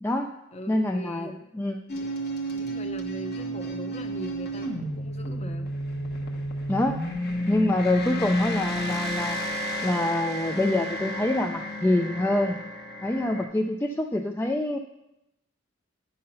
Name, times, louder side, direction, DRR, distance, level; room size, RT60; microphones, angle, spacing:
voice 1, 0.0-0.3 0.7-1.8 6.7-7.0 7.5-9.4 9.8-12.6 13.0-14.8, left 1 dB, 10° left, 3 dB, 0.3 m, -26 dB
voice 2, 0.5-1.4 1.9-2.1 2.5-5.7, left 1 dB, 30° left, 7 dB, 0.7 m, -40 dB
sound 1, 1.9-13.5, equal, 50° left, 1.1 m, -31 dB
8.7 x 5.7 x 5.5 m, 0.88 s
head